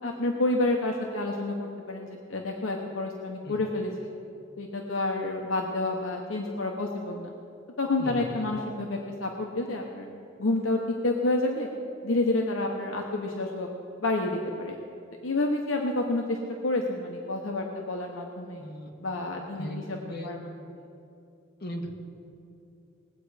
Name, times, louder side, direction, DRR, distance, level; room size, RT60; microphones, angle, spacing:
voice 1, 0.0-4.1 4.6-7.3 7.8-10.1 10.4-11.7 12.0-13.7 14.0-14.8 15.2-16.4 16.6-18.6 19.0-19.8 20.2-20.4 20.7-20.9, left 2 dB, 80° left, 1 dB, 1.0 m, -29 dB
voice 2, 8.0-8.5 18.6-18.9 19.6-20.3 21.6-21.9, equal, 55° left, 0 dB, 1.8 m, -37 dB
20.5 x 8.2 x 4.9 m, 2.6 s
head